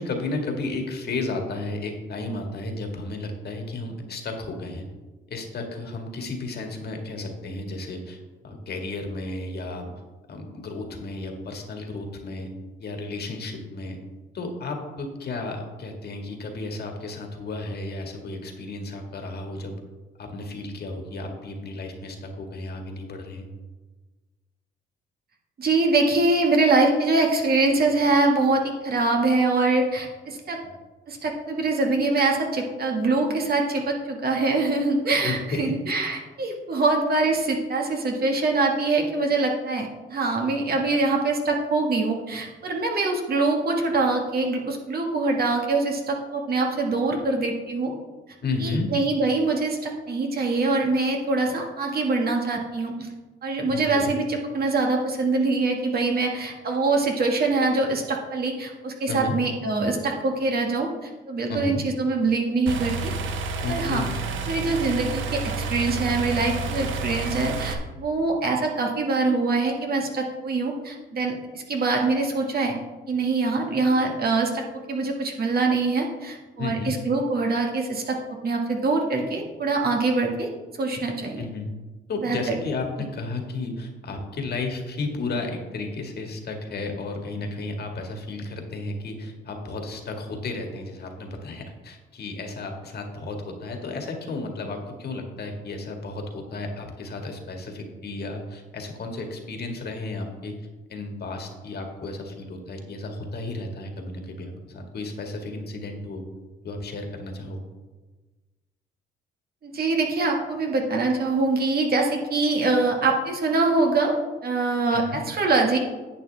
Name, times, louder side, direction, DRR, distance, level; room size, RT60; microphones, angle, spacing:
voice 1, 0.0-4.9 5.3-8.2 8.4-9.9 10.3-12.5 12.8-14.0 14.3-19.8 20.2-23.5 30.5-30.7 35.2-35.7 48.4-48.9 53.7-54.1 59.1-59.4 61.5-61.8 63.6-64.1 76.6-76.9 81.3-81.7 82.1-100.6 100.9-106.3 106.6-107.6 114.9-115.2, left 2 dB, 55° left, 3 dB, 1.8 m, -33 dB
voice 2, 25.6-30.6 31.1-48.0 48.6-53.1 53.4-63.1 63.7-64.0 64.5-72.8 73.1-78.2 78.4-80.5 80.8-81.4 82.2-82.5 109.6-114.2 114.4-115.8, right 3 dB, 50° right, 1 dB, 1.7 m, -24 dB
sound 1, 62.7-67.7, right 4 dB, 75° right, 0.9 m, -30 dB
10.5 x 8.2 x 3.4 m, 1.2 s
cardioid pair, 90°, 20 cm